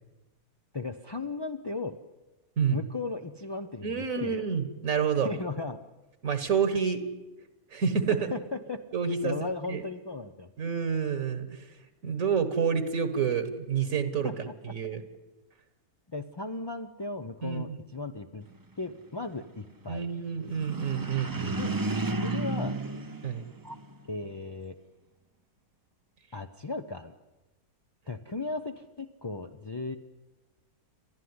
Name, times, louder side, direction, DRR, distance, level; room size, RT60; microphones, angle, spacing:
voice 1, 0.7-2.0 2.7-4.4 5.2-5.8 8.1-8.8 9.2-10.5 14.2-14.7 16.1-18.5 18.8-20.1 21.6-21.7 22.2-22.8 24.1-24.7 26.3-27.1 28.1-30.0, left 3 dB, 35° left, 4 dB, 0.4 m, -36 dB
voice 2, 3.8-5.3 6.2-7.0 7.7-8.2 8.9-9.8 10.6-11.6 12.0-14.3 14.6-15.0 17.4-17.6 19.9-21.8 23.2-23.5, right 6 dB, 65° right, 10 dB, 1.7 m, -28 dB
sound 1, 20.5-24.0, right 2 dB, 25° right, 0.4 m, -33 dB
30.0 x 11.5 x 9.6 m, 1.1 s
omnidirectional pair, 1.6 m